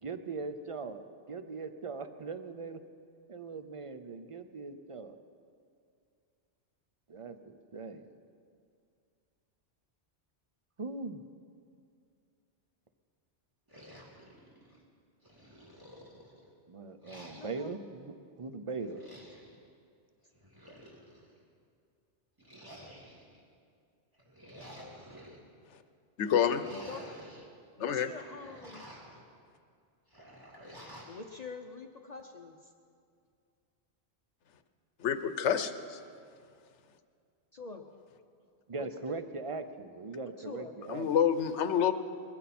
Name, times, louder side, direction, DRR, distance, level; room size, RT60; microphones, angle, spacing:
voice 1, 0.0-2.8 3.3-5.2 7.1-8.1 10.8-11.2 16.7-19.0 38.7-41.1, right 4 dB, 35° right, 10 dB, 0.6 m, -40 dB
sound 1, 13.7-14.8 15.2-16.5 17.0-17.8 18.8-19.6 20.3-21.3 22.4-23.4 24.1-25.4 26.2-27.5 27.9-29.2 30.1-31.2, equal, 20° right, 2.3 m, -51 dB
voice 2, 17.3-17.7 26.7-27.0 27.8-28.9 31.1-32.7 37.5-37.8 38.8-39.2 40.4-40.7, left 4 dB, 45° left, 4 dB, 0.7 m, -45 dB
voice 3, 26.2-26.6 27.8-28.1 35.0-36.0 40.9-41.9, left 8 dB, 85° left, 11 dB, 1.1 m, -28 dB
21.0 x 15.0 x 4.3 m, 2.3 s
omnidirectional pair, 1.2 m